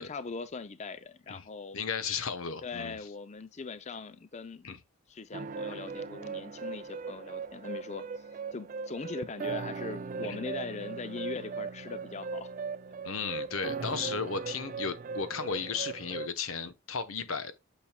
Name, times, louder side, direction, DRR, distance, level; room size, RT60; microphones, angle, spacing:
voice 1, 0.0-1.8 2.6-4.8 5.1-12.5 13.8-14.0, left 4 dB, 35° left, 0.5 m, -41 dB
voice 2, 1.7-3.0 4.6-4.8 10.2-10.4 13.0-17.5, left 5 dB, 75° left, 1.0 m, -34 dB
sound 1, 5.3-16.3, right 4 dB, 40° right, 0.4 m, -38 dB
8.9 x 6.2 x 2.2 m
head